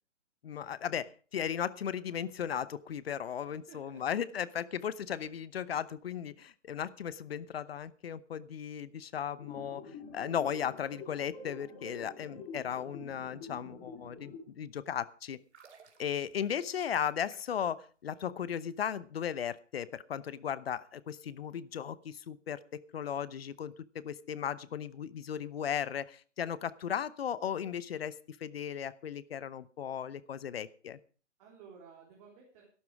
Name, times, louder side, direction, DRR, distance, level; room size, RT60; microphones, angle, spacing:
voice 1, 0.4-15.4 16.0-28.1 28.4-31.0, left 8 dB, 55° left, 18 dB, 0.9 m, -36 dB
voice 2, 3.3-4.6 31.4-32.6, right 6 dB, 30° right, -2 dB, 3.6 m, -56 dB
sound 1, 9.4-14.4, left 4 dB, 20° left, 3.4 m, -47 dB
sound 2, 15.4-17.7 18.0-18.2, right 6 dB, 60° right, 2.9 m, -59 dB
13.5 x 12.0 x 4.8 m, 0.39 s
hypercardioid pair, 150°, 37 cm